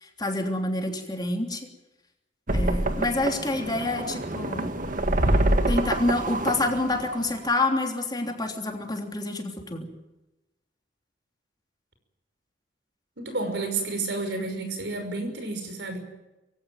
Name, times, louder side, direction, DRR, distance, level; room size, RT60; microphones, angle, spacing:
voice 1, 0.0-1.7 2.5-4.7 5.7-9.9, left 2 dB, 25° left, 3 dB, 3.2 m, -27 dB
sound 1, 2.5-7.5, right 1 dB, 50° right, 1.8 m, -26 dB
voice 2, 13.2-16.0, right 3 dB, 75° right, 6 dB, 5.8 m, -30 dB
23.0 x 17.0 x 9.3 m, 1.0 s
head